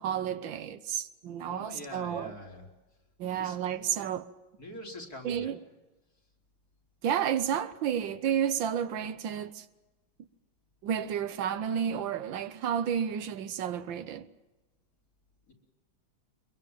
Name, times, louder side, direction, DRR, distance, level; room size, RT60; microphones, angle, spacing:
voice 1, 0.0-2.3 3.2-4.3 5.2-5.6 7.0-9.6 10.8-14.2, right 9 dB, 85° right, 1.7 m, -31 dB
voice 2, 1.4-2.7 3.4-3.6 4.6-5.6 15.5-15.6, left 1 dB, 50° left, 4.3 m, -44 dB
24.0 x 22.0 x 7.3 m
omnidirectional pair, 2.0 m